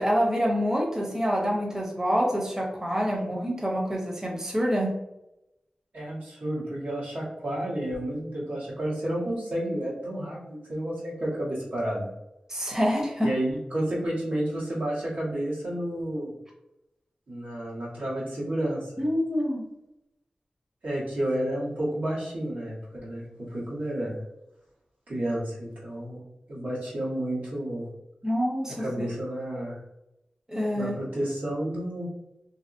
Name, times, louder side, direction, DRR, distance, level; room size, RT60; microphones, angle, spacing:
voice 1, 0.0-4.9 12.5-13.3 19.0-19.7 28.2-29.1 30.5-31.0, equal, 20° right, -1 dB, 0.7 m, -26 dB
voice 2, 5.9-12.1 13.2-16.3 17.3-18.9 20.8-24.2 25.1-26.2 26.5-27.9 28.8-29.8 30.7-32.1, right 1 dB, 85° right, -7 dB, 1.4 m, -31 dB
2.9 x 2.6 x 2.5 m, 0.90 s
wide cardioid pair, 65°, 3 cm